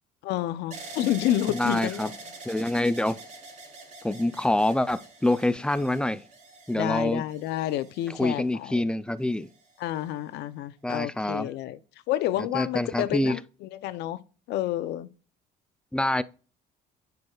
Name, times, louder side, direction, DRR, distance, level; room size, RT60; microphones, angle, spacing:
voice 1, 0.2-2.1 6.7-8.9 9.8-11.8 12.1-14.2 14.5-15.1, left 13 dB, 85° left, 0.6 m, -29 dB
sound 1, 0.7-8.7 9.4-10.1, right 3 dB, 45° right, 3.5 m, -45 dB
voice 2, 1.5-2.1 2.5-3.2 4.0-6.2 6.7-7.2 8.2-9.5 10.8-11.5 12.5-13.4 15.9-16.2, left 1 dB, 5° left, 0.4 m, -26 dB
9.5 x 5.9 x 2.4 m
cardioid pair, 110°, 17 cm